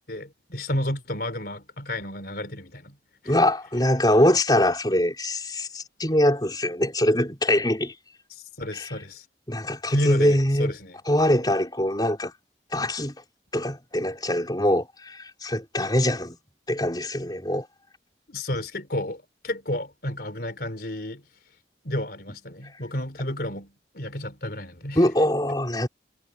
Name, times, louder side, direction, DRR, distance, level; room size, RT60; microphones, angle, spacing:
voice 1, 0.1-3.0 3.2-3.3 8.3-9.3 9.9-11.0 18.3-21.3 21.8-25.0, left 1 dB, 55° left, 4.1 m, -31 dB
voice 2, 3.3-7.9 8.7-8.9 9.5-10.7 11.1-12.3 12.7-13.1 13.5-16.4 16.7-17.7 25.0-25.9, left 1 dB, 20° left, 4.1 m, -23 dB
head